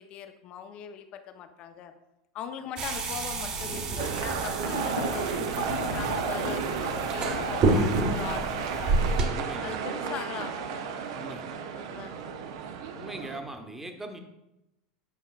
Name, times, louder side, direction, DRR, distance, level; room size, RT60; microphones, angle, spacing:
voice 1, 0.0-1.9 2.3-9.2 9.6-10.7 11.7-12.4, left 8 dB, 45° left, 8 dB, 0.7 m, -40 dB
sound 1, 2.8-9.3, right 2 dB, 40° right, 1.4 m, -29 dB
sound 2, 4.0-13.4, right 6 dB, 65° right, 0.6 m, -33 dB
Thunder, 4.7-9.3, left 3 dB, 90° left, 0.8 m, -38 dB
voice 2, 9.3-9.8 11.1-11.4 12.9-14.2, right 1 dB, 10° right, 5 dB, 1.0 m, -40 dB
8.3 x 5.5 x 2.4 m, 0.91 s
hypercardioid pair, 85°, 3 cm